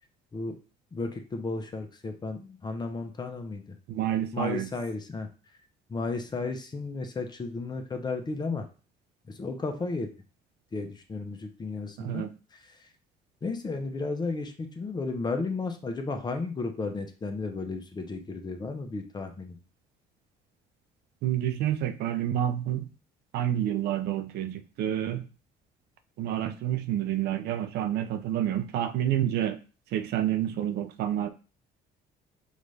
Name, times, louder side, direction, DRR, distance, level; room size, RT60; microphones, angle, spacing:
voice 1, 0.9-3.8 4.3-5.3 5.9-8.7 9.3-10.1 10.7-12.2 12.5-12.9 13.4-19.6, left 3 dB, 25° left, 0.8 m, -33 dB
voice 2, 3.9-4.7 12.0-12.3 21.2-22.9 23.3-25.3 26.2-29.6 29.9-31.3, right 11 dB, 75° right, 0.5 m, -28 dB
5.1 x 2.6 x 3.2 m
cardioid pair, 110°, 17 cm